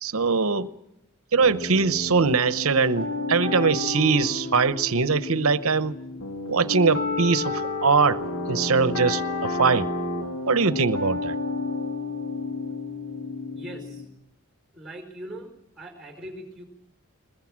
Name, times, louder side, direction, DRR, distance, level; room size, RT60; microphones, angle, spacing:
voice 1, 0.0-0.7 1.3-6.0 6.5-8.2 8.5-9.9 10.5-11.4, right 4 dB, 75° right, 0.9 m, -22 dB
sound 1, 1.4-14.1, left 3 dB, 90° left, 2.8 m, -31 dB
voice 2, 13.5-14.0 14.7-15.5 15.8-16.6, right 1 dB, 5° right, 4.3 m, -40 dB
21.5 x 21.0 x 7.4 m
head